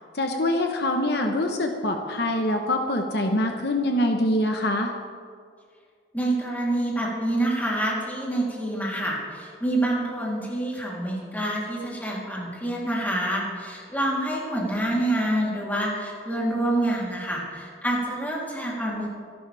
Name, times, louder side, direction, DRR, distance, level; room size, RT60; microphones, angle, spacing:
voice 1, 0.1-4.9, left 1 dB, 65° left, 3 dB, 1.2 m, -24 dB
voice 2, 6.1-19.1, right 1 dB, 10° left, -4 dB, 3.6 m, -27 dB
26.0 x 12.0 x 3.6 m, 2.1 s
head